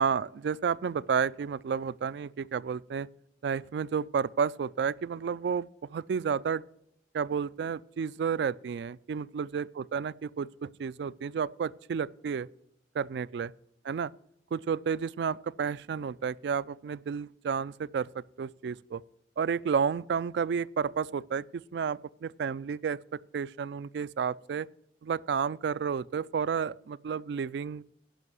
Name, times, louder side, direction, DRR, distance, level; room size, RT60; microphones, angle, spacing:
voice 1, 0.0-3.1 3.4-6.6 7.1-12.5 12.9-13.5 13.8-14.1 14.5-19.0 19.4-24.7 25.0-27.8, right 6 dB, 65° right, 0.3 m, -31 dB
11.0 x 5.5 x 7.8 m
head